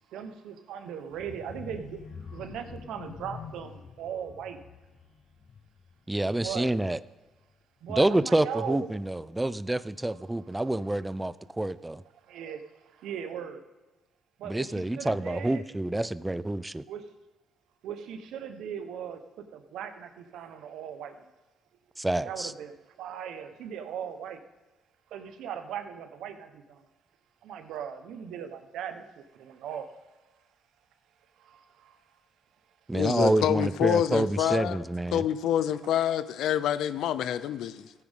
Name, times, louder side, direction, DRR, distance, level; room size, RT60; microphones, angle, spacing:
voice 1, 0.1-2.0 2.3-4.6 6.3-6.7 7.8-8.9 12.2-13.6 14.4-15.6 16.9-17.0 17.8-21.3 22.2-22.7 23.0-24.4 25.1-26.8 27.4-29.9 31.4-32.0, right 8 dB, 85° right, 8 dB, 1.1 m, -38 dB
sound 1, 1.1-6.9 7.3-7.5 7.8-7.9, left 6 dB, 55° left, 1.0 m, -46 dB
voice 2, 6.1-7.0 7.9-12.0 14.5-16.6 22.0-22.5 32.9-35.2, right 1 dB, 10° right, 16 dB, 0.4 m, -27 dB
voice 3, 32.9-34.8 35.1-37.9, left 10 dB, 85° left, 14 dB, 0.6 m, -27 dB
15.0 x 9.4 x 3.7 m, 1.1 s
cardioid pair, 90°, 0 cm